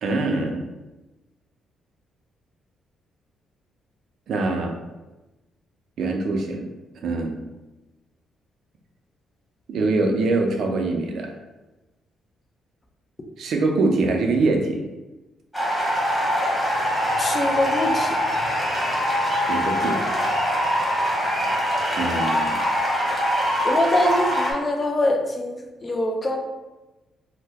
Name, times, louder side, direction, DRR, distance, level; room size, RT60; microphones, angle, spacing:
voice 1, 0.0-0.7 4.3-4.8 6.0-6.7 7.0-7.4 9.7-11.4 13.4-14.8 19.4-20.1 22.0-22.6, right 3 dB, 65° right, 3 dB, 0.5 m, -23 dB
sound 1, 15.5-24.5, equal, 5° left, 1.1 m, -23 dB
voice 2, 17.2-18.2 23.6-26.4, left 1 dB, 25° left, 3 dB, 0.5 m, -23 dB
2.7 x 2.1 x 3.4 m, 1.1 s
cardioid pair, 90°, 0 cm